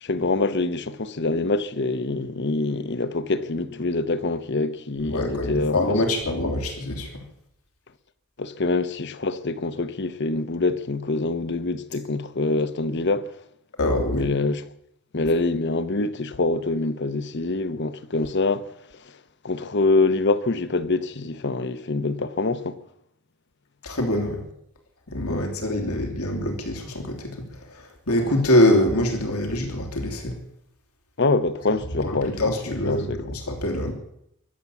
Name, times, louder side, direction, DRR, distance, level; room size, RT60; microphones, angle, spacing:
voice 1, 0.0-6.0 8.4-13.3 14.1-14.6 15.1-18.7 19.0-19.1 19.4-22.8 25.3-25.5 25.9-26.0 28.2-28.4 31.2-32.4 32.7-33.4, left 3 dB, 50° left, 0.9 m, -25 dB
voice 2, 5.1-7.2 13.8-14.3 23.8-24.4 25.1-30.3 32.0-33.9, left 1 dB, 85° left, 3.1 m, -24 dB
23.5 x 8.6 x 7.2 m
head